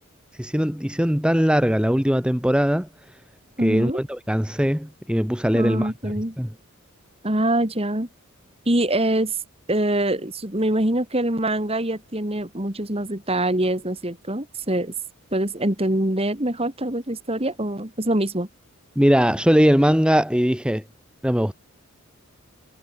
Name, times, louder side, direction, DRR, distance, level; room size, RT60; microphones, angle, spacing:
voice 1, 0.4-2.9 3.6-6.5 19.0-20.8 21.2-21.5, equal, 5° right, 2.1 m, -20 dB
voice 2, 3.6-4.0 5.5-6.4 7.2-8.1 8.7-9.3 9.7-14.9 15.3-18.5, right 1 dB, 25° right, 2.8 m, -24 dB
head